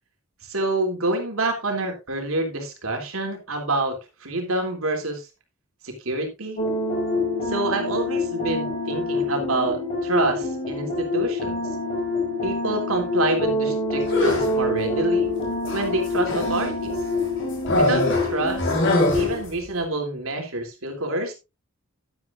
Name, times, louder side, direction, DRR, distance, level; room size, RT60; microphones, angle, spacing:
voice 1, 0.4-5.3 5.8-6.6 7.4-11.6 12.4-15.3 15.7-17.0 17.8-18.8 19.1-21.3, right 2 dB, 90° right, 3 dB, 3.3 m, -27 dB
sound 1, 6.6-19.4, left 2 dB, 35° left, 4.9 m, -26 dB
sound 2, 14.0-14.6 15.7-16.7 17.7-19.5, left 1 dB, 60° left, 3.8 m, -23 dB
11.5 x 11.0 x 2.6 m, 0.25 s
head